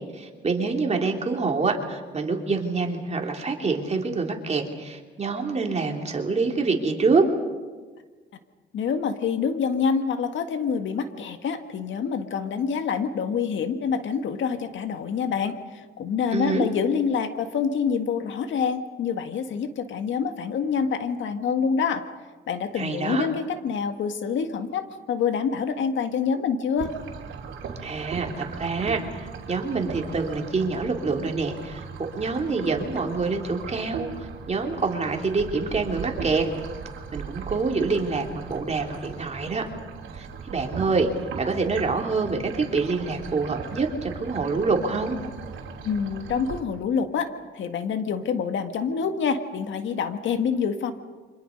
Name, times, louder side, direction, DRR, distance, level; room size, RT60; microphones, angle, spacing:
voice 1, 0.1-7.3 16.3-16.6 22.7-23.3 27.8-31.8 32.1-36.5 37.1-39.6 40.1-41.1 41.4-45.2, right 4 dB, 35° right, 2 dB, 3.4 m, -26 dB
voice 2, 8.7-15.6 16.0-22.0 22.5-26.9 45.8-47.3 47.5-50.9, left 6 dB, 70° left, 8 dB, 1.9 m, -26 dB
sound 1, 26.8-46.6, right 6 dB, 75° right, 3.2 m, -38 dB
28.5 x 25.5 x 5.3 m, 1.4 s
cardioid pair, 90°, 20 cm